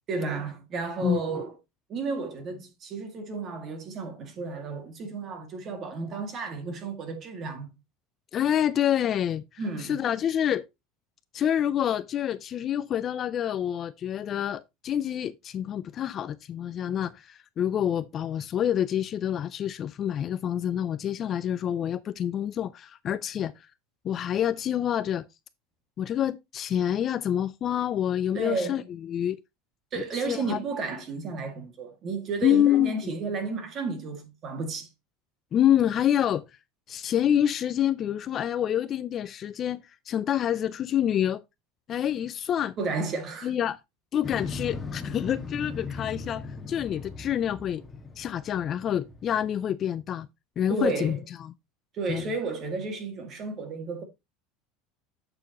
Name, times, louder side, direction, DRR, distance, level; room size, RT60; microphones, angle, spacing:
voice 1, 0.1-1.5 1.9-7.8 9.6-10.0 28.3-28.9 29.9-34.9 42.8-43.5 50.7-51.2 51.9-54.0, right 4 dB, 35° right, 2.1 m, -32 dB
voice 2, 8.3-9.4 9.8-10.6 11.3-23.7 24.0-25.2 26.0-29.4 30.0-30.6 32.4-33.0 35.5-36.4 36.9-41.4 41.9-42.8 43.4-43.8 44.1-47.8 48.2-50.3 50.6-51.5 52.1-52.3, left 10 dB, 35° left, 0.4 m, -27 dB
Motorcycle, 44.2-49.5, left 4 dB, 10° left, 1.5 m, -38 dB
8.1 x 6.7 x 2.9 m
supercardioid pair, 145°, 0 cm